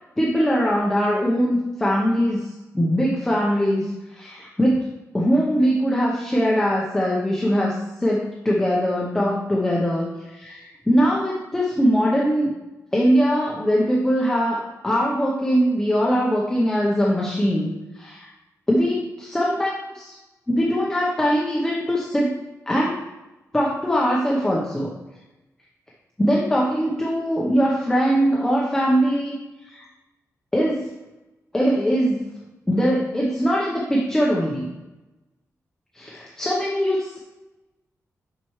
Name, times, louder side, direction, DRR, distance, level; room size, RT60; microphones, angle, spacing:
voice 1, 0.2-4.9 5.1-12.5 12.9-18.3 18.7-20.1 20.5-22.3 22.7-23.0 23.5-24.9 26.2-29.4 29.6-29.8 30.5-30.9 31.5-32.3 32.7-34.7 35.9-37.2, equal, 10° left, -4 dB, 0.8 m, -21 dB
7.3 x 6.1 x 3.1 m, 1.0 s
wide cardioid pair, 180°, 6 cm